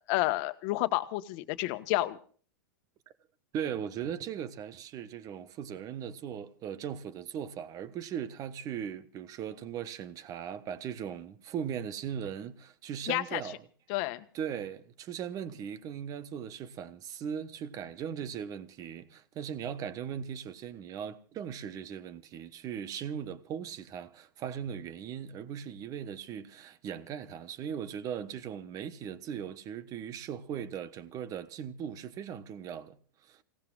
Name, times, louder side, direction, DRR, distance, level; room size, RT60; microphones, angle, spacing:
voice 1, 0.1-2.2 13.1-13.4 13.9-14.2, left 18 dB, 50° left, 1.3 m, -30 dB
voice 2, 3.5-13.6 14.3-33.4, right 8 dB, 35° right, 1.3 m, -39 dB
28.5 x 17.5 x 2.5 m
hypercardioid pair, 120°, 11 cm